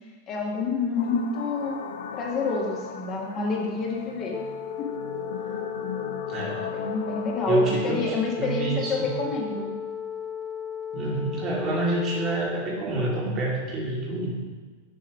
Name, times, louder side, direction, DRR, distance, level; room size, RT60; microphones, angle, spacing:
voice 1, 0.3-1.8 2.1-4.3 4.8-4.9 6.7-9.7, left 4 dB, 35° left, -2 dB, 1.5 m, -28 dB
sound 1, 1.0-7.8, left 6 dB, 60° left, 0.5 m, -38 dB
sound 2, 4.3-12.5, left 8 dB, 10° left, 0.6 m, -35 dB
voice 2, 6.3-6.7 7.5-9.1 10.9-14.3, right 2 dB, 30° right, -3 dB, 1.8 m, -27 dB
6.9 x 5.6 x 4.6 m, 1.4 s
figure-of-eight pair, 90°, 0 cm